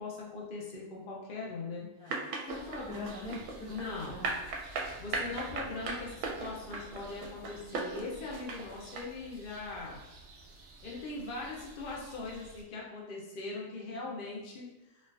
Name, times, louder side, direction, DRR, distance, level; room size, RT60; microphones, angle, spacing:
voice 1, 0.0-1.9 3.7-4.2 5.0-10.0 10.8-14.7, left 3 dB, 85° left, -3 dB, 0.4 m, -40 dB
voice 2, 1.8-4.4, left 2 dB, 40° left, -10 dB, 1.7 m, -42 dB
sound 1, 2.1-9.0, right 3 dB, 70° right, 1.0 m, -37 dB
sound 2, 2.5-12.6, right 2 dB, 90° right, 0.6 m, -52 dB
4.1 x 2.4 x 2.4 m, 1.0 s
omnidirectional pair, 1.8 m